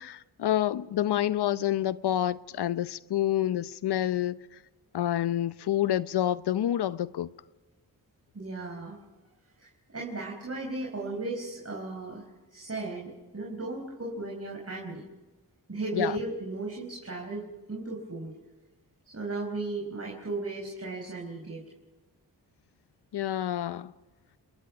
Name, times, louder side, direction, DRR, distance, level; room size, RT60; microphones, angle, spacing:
voice 1, 0.0-4.4 4.9-7.3 15.9-16.1 23.1-23.9, left 12 dB, 90° left, 0.7 m, -28 dB
voice 2, 8.3-9.0 9.6-12.2 12.5-15.0 15.7-18.3 19.0-21.6, right 2 dB, 40° right, 4.7 m, -36 dB
30.0 x 20.5 x 6.0 m
cardioid pair, 55°, 39 cm